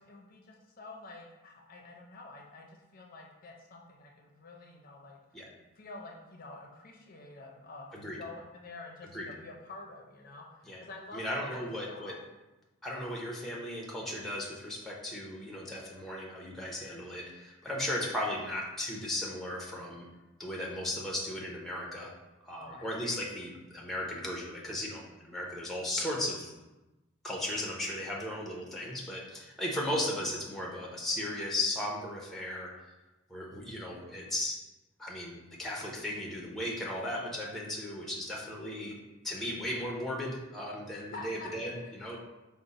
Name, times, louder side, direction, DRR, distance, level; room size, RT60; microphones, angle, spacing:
voice 1, 0.0-5.4 5.8-12.1 22.5-23.0 41.1-41.8, left 2 dB, 45° left, 0 dB, 0.5 m, -48 dB
voice 2, 11.1-12.1 12.8-20.1 20.4-22.1 22.4-26.5 27.2-32.7 33.3-34.6 35.0-39.0 39.2-42.2, left 1 dB, ahead, -3 dB, 0.6 m, -36 dB
5.0 x 2.1 x 4.0 m, 1.1 s
head